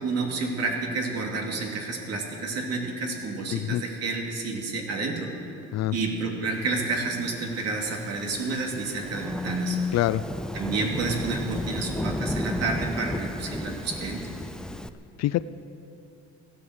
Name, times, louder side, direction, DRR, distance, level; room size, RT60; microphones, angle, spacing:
voice 1, 0.0-5.3 5.9-9.8 10.5-14.3, right 3 dB, 55° right, 1 dB, 2.6 m, -30 dB
voice 2, 3.5-3.8 5.7-5.9 9.9-10.2 15.2-15.5, left 15 dB, 60° left, 14 dB, 0.5 m, -25 dB
Thunderstorm / Rain, 7.2-14.9, left 1 dB, ahead, 0.5 m, -34 dB
15.5 x 11.0 x 7.9 m, 2.7 s
cardioid pair, 130°, 29 cm